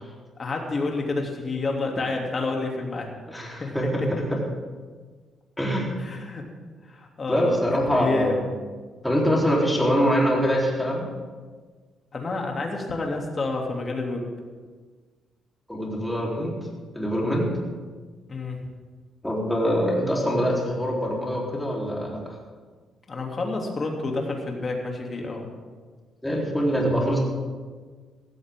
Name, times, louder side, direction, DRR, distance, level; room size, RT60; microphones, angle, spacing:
voice 1, 0.4-3.1 3.6-4.1 6.0-6.4 6.9-8.4 12.1-14.3 18.3-18.6 23.1-25.5, left 3 dB, 35° left, 1 dB, 2.9 m, -29 dB
voice 2, 3.3-4.2 5.6-6.0 7.3-8.4 9.0-11.1 15.7-16.6 16.9-17.5 19.2-22.4 26.2-27.2, equal, 5° left, -3 dB, 3.9 m, -24 dB
16.5 x 14.5 x 3.8 m, 1.5 s
cardioid pair, 90°, 0 cm